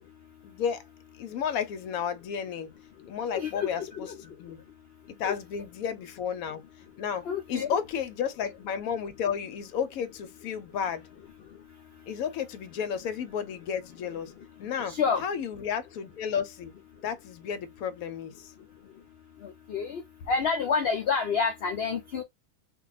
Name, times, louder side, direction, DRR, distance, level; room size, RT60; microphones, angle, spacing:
voice 1, 0.4-0.8 1.2-2.7 3.1-4.6 5.2-6.6 7.0-11.0 12.1-14.3 14.6-16.7 17.0-18.5, left 7 dB, 70° left, 1.0 m, -32 dB
voice 2, 3.3-4.1 5.2-5.3 7.3-7.7 14.9-15.2 19.4-20.0 20.3-22.2, left 5 dB, 90° left, 0.5 m, -28 dB
2.5 x 2.2 x 3.8 m
omnidirectional pair, 1.6 m